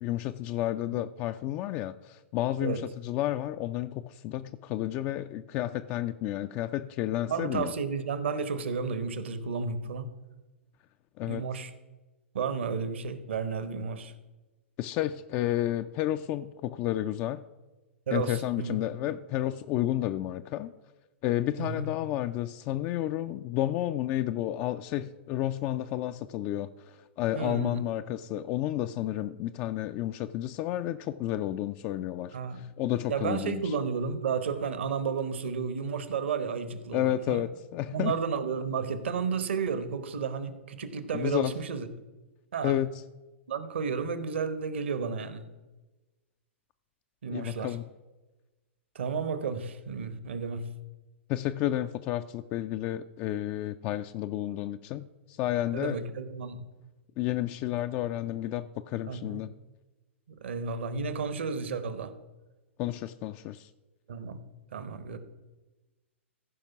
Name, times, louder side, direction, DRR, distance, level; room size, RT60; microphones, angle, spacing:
voice 1, 0.0-7.7 11.2-11.4 14.8-17.4 18.1-20.7 21.2-33.7 36.9-38.2 41.1-41.5 42.6-42.9 47.3-47.8 51.3-56.0 57.2-59.5 62.8-63.7, left 13 dB, 30° left, 0.3 m, -31 dB
voice 2, 7.3-10.1 11.3-11.7 12.3-14.1 18.1-18.8 21.6-21.9 27.3-27.8 32.3-32.6 33.1-37.4 37.9-41.9 42.5-42.8 43.5-45.5 47.2-47.8 48.9-50.7 55.7-56.7 59.1-59.4 60.3-62.1 64.1-64.4 64.7-65.2, right 5 dB, 60° right, 1.0 m, -32 dB
15.0 x 5.1 x 5.8 m
figure-of-eight pair, 105°, 7 cm